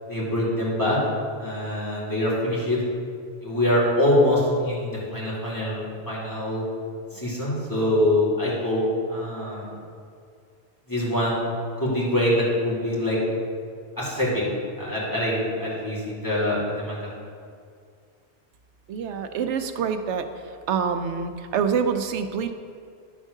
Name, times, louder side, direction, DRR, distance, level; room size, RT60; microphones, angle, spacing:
voice 1, 0.1-1.0 1.4-2.8 3.4-6.7 7.1-8.8 9.1-9.7 10.9-11.5 11.8-13.2 14.0-14.4 14.8-17.1, left 1 dB, 15° left, -8 dB, 2.3 m, -24 dB
voice 2, 18.9-20.3 20.7-22.5, right 6 dB, 85° right, 8 dB, 0.9 m, -26 dB
10.0 x 3.6 x 6.4 m, 2.2 s
omnidirectional pair, 1.2 m